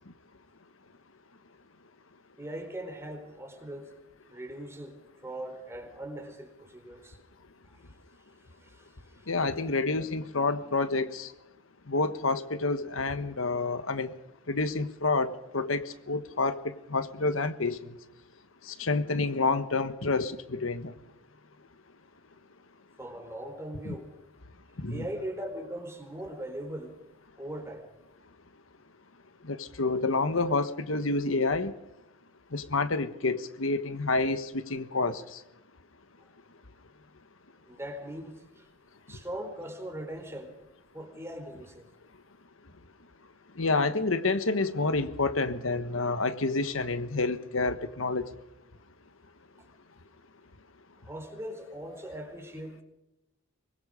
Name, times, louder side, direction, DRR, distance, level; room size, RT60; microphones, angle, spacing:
voice 1, 2.4-3.9 4.3-7.2 8.6-9.3 23.0-24.1 24.9-27.0 27.4-27.9 37.7-38.7 39.1-40.6 40.9-41.9 51.0-52.8, right 1 dB, 15° right, 5 dB, 4.2 m, -40 dB
voice 2, 9.3-11.3 11.9-14.1 14.5-17.8 18.7-20.9 23.9-24.0 24.8-25.0 29.5-31.7 32.5-35.4 43.6-48.3, left 3 dB, 85° left, 11 dB, 1.3 m, -28 dB
24.5 x 21.5 x 5.0 m, 0.89 s
head